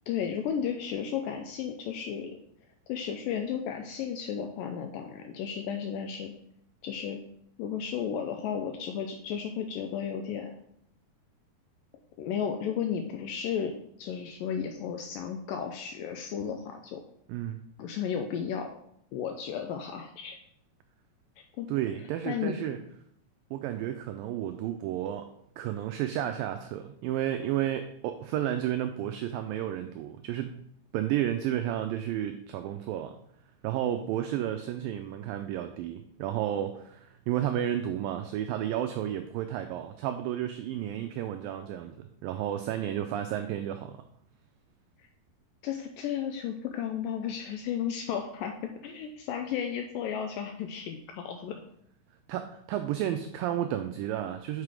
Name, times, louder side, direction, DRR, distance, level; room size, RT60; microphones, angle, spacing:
voice 1, 0.1-2.4 2.9-6.3 6.8-7.2 7.6-10.6 12.2-17.0 17.8-18.7 19.1-20.4 21.6-21.7 22.2-22.6 45.6-51.6, left 8 dB, 85° left, 5 dB, 2.0 m, -33 dB
voice 2, 17.3-17.6 21.7-22.8 23.5-25.3 25.6-30.6 30.9-33.1 33.6-44.0 52.3-54.6, right 11 dB, 90° right, 7 dB, 2.0 m, -32 dB
6.1 x 5.7 x 4.9 m, 0.71 s
omnidirectional pair, 4.6 m